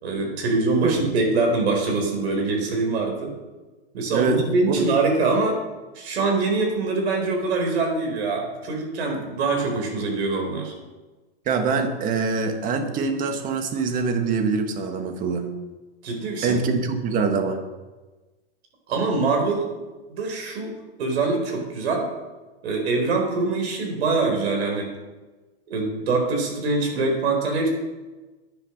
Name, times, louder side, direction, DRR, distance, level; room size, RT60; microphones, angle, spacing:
voice 1, 0.0-3.3 3.9-5.6 5.9-10.7 16.0-16.6 18.9-19.7 20.1-22.1 22.6-24.9 25.7-27.7, right 3 dB, 75° right, 2 dB, 4.4 m, -24 dB
voice 2, 4.1-4.9 11.4-15.5 16.4-17.6, right 4 dB, 25° right, 6 dB, 1.5 m, -24 dB
10.0 x 9.7 x 6.6 m, 1.2 s
supercardioid pair, 155°, 32 cm